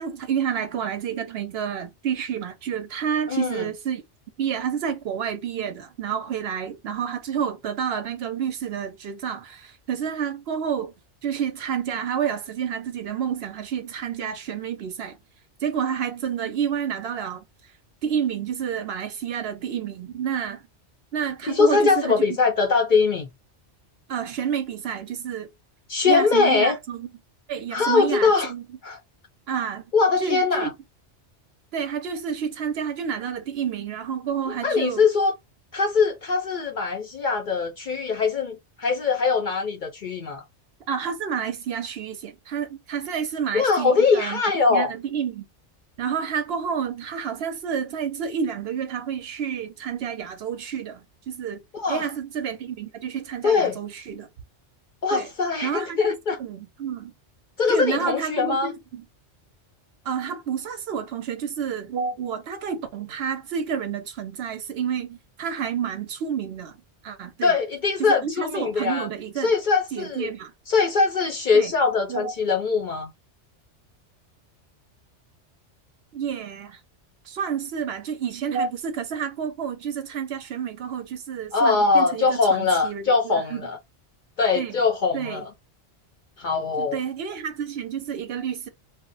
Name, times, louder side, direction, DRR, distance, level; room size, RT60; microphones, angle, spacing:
voice 1, 0.0-4.0 4.4-10.9 11.2-15.2 15.6-17.4 18.0-20.6 21.1-22.3 24.1-25.5 26.0-27.1 27.5-28.8 29.5-29.8 30.2-30.7 31.7-35.1 40.9-44.4 44.7-45.5 46.0-51.6 51.9-54.3 55.1-55.3 55.6-57.1 57.7-59.0 60.0-66.8 67.0-67.6 68.0-69.5 69.9-70.5 71.5-71.7 72.1-72.3 76.1-76.8 77.2-83.7 84.5-84.8 85.1-85.5 86.8-88.7, right 7 dB, 65° right, 0.7 m, -29 dB
voice 2, 3.3-3.7 21.5-23.3 25.9-26.7 27.7-28.5 28.8-29.0 29.9-30.7 34.6-35.3 35.7-40.4 43.5-44.9 51.7-52.1 53.4-53.8 55.0-56.4 57.6-58.7 67.4-69.1 69.4-70.3 70.7-73.1 81.5-83.8 84.4-85.5 86.4-87.0, left 4 dB, 55° left, 0.6 m, -22 dB
2.3 x 2.0 x 3.7 m
omnidirectional pair, 1.2 m